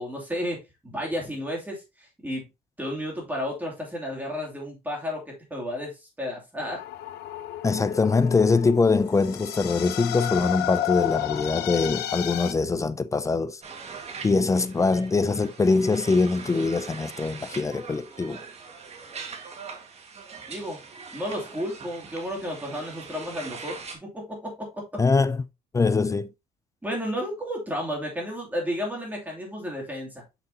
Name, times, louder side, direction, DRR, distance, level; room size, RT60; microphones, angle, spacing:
voice 1, 0.0-1.8 2.2-2.4 2.8-6.8 20.5-20.8 21.1-24.8 26.8-30.2, equal, 10° right, 2.7 m, -32 dB
sound 1, 6.6-12.5, left 13 dB, 75° left, 0.7 m, -31 dB
voice 2, 7.6-13.6 14.2-18.4 25.0-25.4 25.7-26.3, left 4 dB, 20° left, 0.4 m, -23 dB
sound 2, 13.6-24.0, right 5 dB, 40° right, 1.7 m, -42 dB
6.7 x 6.0 x 2.8 m
cardioid pair, 110°, 17 cm